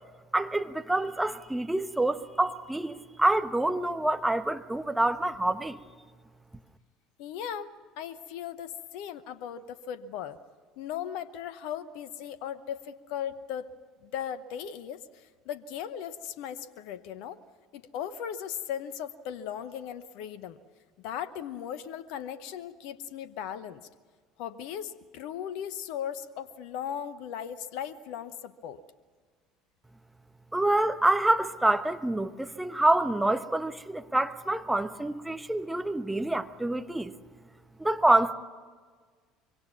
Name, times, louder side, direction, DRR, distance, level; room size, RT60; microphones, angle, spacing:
voice 1, 0.3-5.8 30.5-37.1 37.8-38.3, right 2 dB, 5° right, 1.2 m, -26 dB
voice 2, 7.2-10.4 10.8-13.7 14.0-17.4 17.7-20.6 21.0-23.9 24.4-28.8, left 9 dB, 60° left, 0.9 m, -37 dB
25.0 x 24.0 x 7.1 m
figure-of-eight pair, 65°, 0 cm